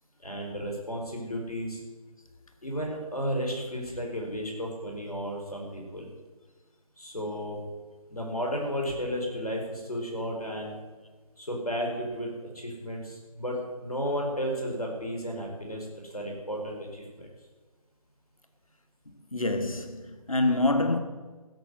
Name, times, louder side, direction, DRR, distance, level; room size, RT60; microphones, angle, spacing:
voice 1, 0.2-1.8 2.6-6.1 7.0-7.6 8.1-10.8 11.4-15.9 16.1-17.3, equal, 85° left, 4.9 m, -33 dB
voice 2, 19.3-21.0, left 2 dB, 65° left, 1.6 m, -26 dB
16.0 x 6.6 x 8.2 m
figure-of-eight pair, 155°, 19 cm